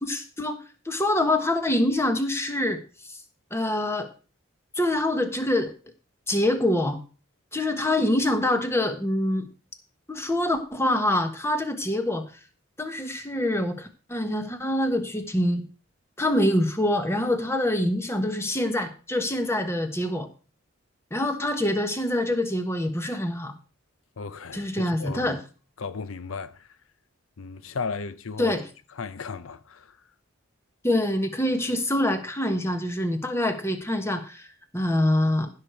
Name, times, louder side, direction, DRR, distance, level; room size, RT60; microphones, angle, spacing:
voice 1, 0.0-0.6 0.8-2.8 3.1-3.2 3.5-4.1 4.7-5.7 6.3-7.0 7.5-9.5 10.1-12.2 12.8-15.7 16.2-20.3 21.1-23.5 24.5-25.4 28.4-28.6 30.8-34.5 34.7-35.5, left 1 dB, 10° left, 1.3 m, -25 dB
voice 2, 24.2-25.3 25.8-26.7 27.4-28.5 28.9-30.0, left 4 dB, 75° left, 0.6 m, -35 dB
15.5 x 6.7 x 4.5 m
head